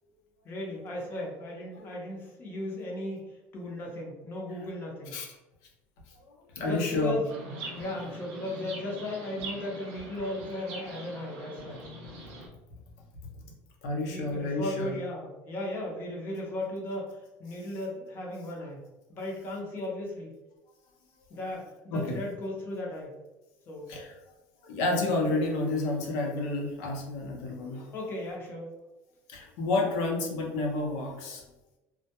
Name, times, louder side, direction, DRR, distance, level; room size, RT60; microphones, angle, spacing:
voice 1, 0.4-3.2 3.5-5.2 6.6-7.2 7.7-11.8 13.9-18.8 19.1-20.3 21.3-23.1 23.7-23.9 27.9-28.7, left 1 dB, 35° left, -1 dB, 0.7 m, -36 dB
voice 2, 6.6-7.2 13.8-15.0 21.9-22.2 23.9-24.1 24.6-27.9 29.3-31.4, left 2 dB, 75° left, 0 dB, 0.7 m, -30 dB
Chirp tweet, 7.3-12.5, right 2 dB, 75° right, 0.6 m, -43 dB
2.1 x 2.1 x 2.8 m, 1.0 s
cardioid pair, 145°, 6 cm